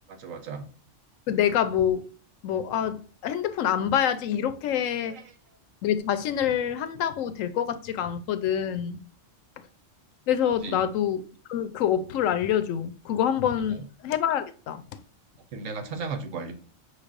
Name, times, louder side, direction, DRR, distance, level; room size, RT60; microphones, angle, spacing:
voice 1, 0.1-0.7 5.1-5.3 10.6-10.9 13.7-13.8 15.5-16.5, right 4 dB, 85° right, 1.2 m, -36 dB
voice 2, 1.3-2.1 2.4-5.2 5.8-9.0 10.3-11.2 11.5-14.8, left 9 dB, 85° left, 1.0 m, -26 dB
5.6 x 3.3 x 2.4 m
omnidirectional pair, 1.3 m